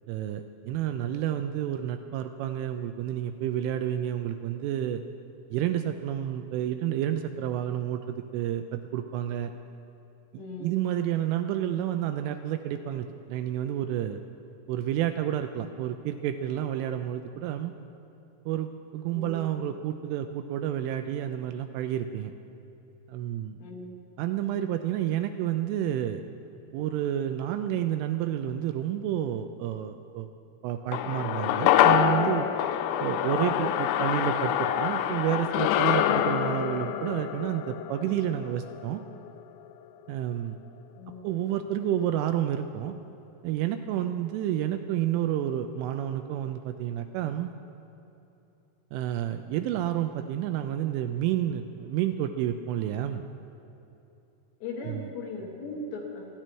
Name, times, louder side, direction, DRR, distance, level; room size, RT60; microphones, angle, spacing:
voice 1, 0.1-5.0 5.5-9.5 10.3-14.2 14.7-17.7 18.5-22.3 23.1-23.6 24.2-26.2 26.7-30.3 30.6-32.5 33.0-39.0 40.1-40.6 41.2-42.9 43.4-47.5 48.9-53.2 54.8-55.1, right 11 dB, 85° right, 7 dB, 2.9 m, -30 dB
voice 2, 10.4-10.8 19.1-19.5 23.6-24.0 41.0-41.3 54.6-56.2, left 2 dB, 70° left, -1 dB, 2.9 m, -38 dB
sound 1, 30.9-39.4 39.7-39.8, left 10 dB, 90° left, 3.3 m, -26 dB
28.0 x 10.0 x 4.6 m, 2.9 s
omnidirectional pair, 6.0 m